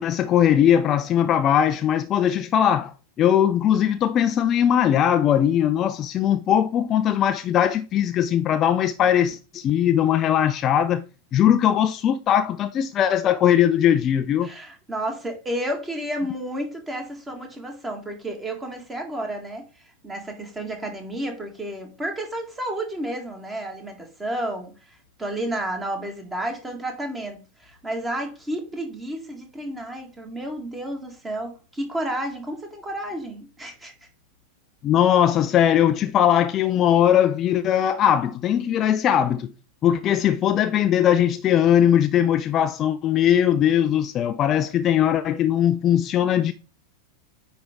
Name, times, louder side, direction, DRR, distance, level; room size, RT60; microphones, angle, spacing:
voice 1, 0.0-11.0 11.3-14.5 34.8-39.5 39.8-46.5, left 10 dB, 30° left, 0.4 m, -20 dB
voice 2, 14.4-33.9, right 1 dB, 15° right, 1.9 m, -31 dB
9.4 x 3.5 x 3.7 m
figure-of-eight pair, 90°, 0 cm